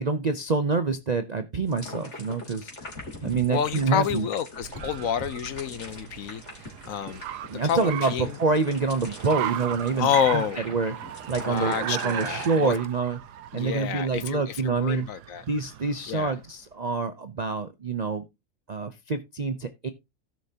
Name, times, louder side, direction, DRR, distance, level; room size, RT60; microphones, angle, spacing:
voice 1, 0.0-2.9 3.2-4.3 7.5-10.9 11.3-13.2 13.5-15.1 15.5-18.3 18.7-19.9, right 4 dB, 50° right, 0.5 m, -27 dB
sound 1, 1.7-12.6, left 2 dB, 45° left, 3.4 m, -43 dB
voice 2, 3.5-7.2 7.6-8.3 10.0-10.6 11.5-12.7 13.5-15.4 16.1-16.3, left 8 dB, 65° left, 1.0 m, -28 dB
Car, 3.6-16.5, right 11 dB, 85° right, 1.3 m, -37 dB
16.5 x 6.2 x 2.8 m
omnidirectional pair, 1.7 m